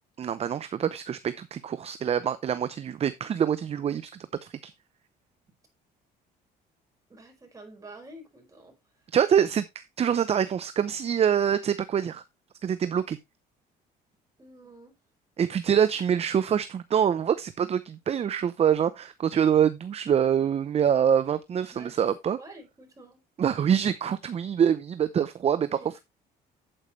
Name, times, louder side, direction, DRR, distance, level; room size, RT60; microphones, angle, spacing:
voice 1, 0.2-4.1 4.4-4.7 9.1-12.2 12.6-13.2 15.4-22.4 23.4-26.0, right 8 dB, 40° right, 0.6 m, -25 dB
voice 2, 7.1-8.7 14.4-14.9 21.7-22.1 22.4-23.2 25.7-25.9, right 2 dB, 20° right, 5.1 m, -48 dB
8.9 x 8.2 x 3.1 m
cardioid pair, 110°, 17 cm